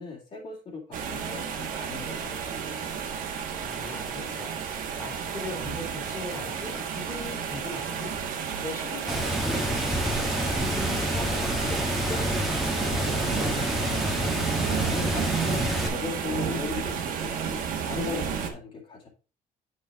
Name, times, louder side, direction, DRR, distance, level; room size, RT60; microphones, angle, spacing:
voice 1, 0.0-3.0 14.8-19.1, left 4 dB, 35° left, -3 dB, 2.4 m, -37 dB
sound 1, 0.9-18.5, right 7 dB, 55° right, 1.6 m, -32 dB
voice 2, 3.5-4.6 5.0-12.5 12.8-14.1, left 2 dB, 15° left, -1 dB, 2.4 m, -40 dB
Water, 9.1-15.9, equal, ahead, 1.6 m, -28 dB
8.3 x 6.4 x 3.6 m, 0.34 s
cardioid pair, 175°, 16 cm